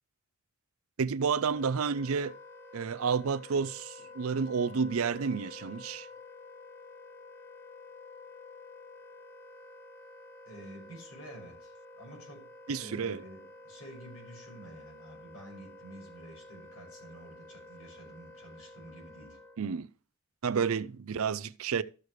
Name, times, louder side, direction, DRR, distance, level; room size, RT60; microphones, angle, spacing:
voice 1, 1.0-2.3 2.7-6.1 12.7-13.2 19.6-19.9 20.4-21.8, right 6 dB, 75° right, 0.5 m, -30 dB
Wind instrument woodwind instrument, 1.5-19.7, left 2 dB, 10° left, 0.8 m, -50 dB
voice 2, 10.4-19.4, right 1 dB, 90° left, 6.0 m, -50 dB
13.5 x 6.5 x 3.1 m
head